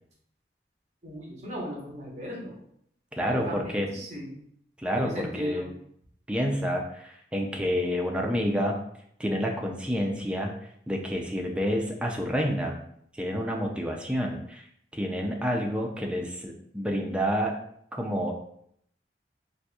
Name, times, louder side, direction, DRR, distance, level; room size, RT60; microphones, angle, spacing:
voice 1, 1.0-2.6 3.2-4.4 5.0-5.7, equal, 40° right, -3 dB, 1.0 m, -37 dB
voice 2, 3.1-3.9 4.8-5.7 6.3-8.8 9.2-10.5 10.9-12.8 13.1-14.6 14.9-17.6 17.9-18.3, equal, 5° right, 1 dB, 0.4 m, -29 dB
4.1 x 2.5 x 2.3 m, 0.69 s
head